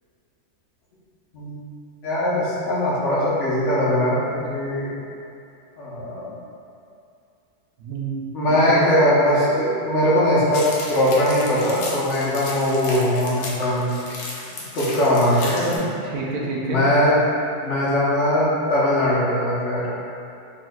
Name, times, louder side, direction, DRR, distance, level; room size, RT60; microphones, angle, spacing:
voice 1, 2.0-4.9 5.8-6.3 8.3-13.9 14.7-15.8 16.7-17.2 17.6-19.8, left 1 dB, 55° left, -8 dB, 1.1 m, -20 dB
voice 2, 7.8-8.9 15.8-16.8, right 3 dB, 80° right, -3 dB, 1.1 m, -29 dB
sound 1, 10.5-15.8, left 2 dB, 90° left, 1.2 m, -34 dB
4.2 x 3.6 x 2.2 m, 2.6 s
omnidirectional pair, 1.6 m